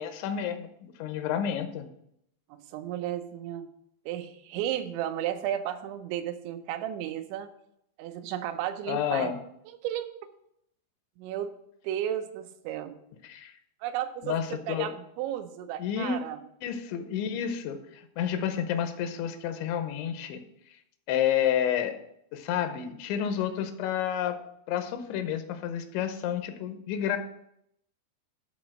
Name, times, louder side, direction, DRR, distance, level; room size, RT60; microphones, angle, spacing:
voice 1, 0.0-1.9 8.9-9.4 13.2-13.5 14.2-14.9 15.8-16.2 16.6-20.4 21.1-22.0 22.3-24.4 24.7-27.2, left 9 dB, 90° left, 8 dB, 3.1 m, -30 dB
voice 2, 2.5-3.7 4.1-7.5 8.0-9.3 9.8-10.1 11.2-11.5 11.8-12.9 13.8-14.4 14.7-16.4, right 11 dB, 85° right, 8 dB, 3.0 m, -33 dB
11.0 x 4.1 x 6.3 m, 0.75 s
omnidirectional pair, 5.2 m